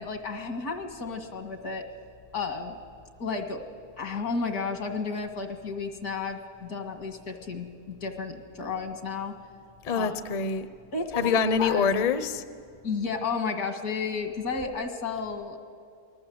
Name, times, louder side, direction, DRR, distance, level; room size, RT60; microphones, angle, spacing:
voice 1, 0.0-1.8 2.3-2.8 3.2-3.6 4.0-9.3 9.9-10.1 10.9-11.9 12.8-15.6, left 4 dB, 80° left, 6 dB, 2.4 m, -32 dB
voice 2, 9.8-10.7 11.2-12.4, left 5 dB, 35° left, 12 dB, 0.8 m, -25 dB
27.5 x 21.0 x 7.9 m, 2.3 s
omnidirectional pair, 1.6 m